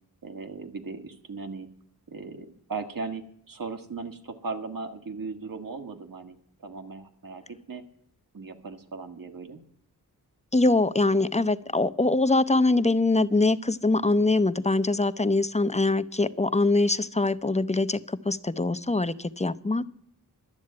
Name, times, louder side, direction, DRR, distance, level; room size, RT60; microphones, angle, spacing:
voice 1, 0.2-1.7 2.1-7.8 8.3-9.6, right 4 dB, 60° right, 5 dB, 1.7 m, -38 dB
voice 2, 10.5-19.8, left 2 dB, 20° left, 14 dB, 0.7 m, -23 dB
12.0 x 7.2 x 8.8 m, 0.72 s
cardioid pair, 45°, 37 cm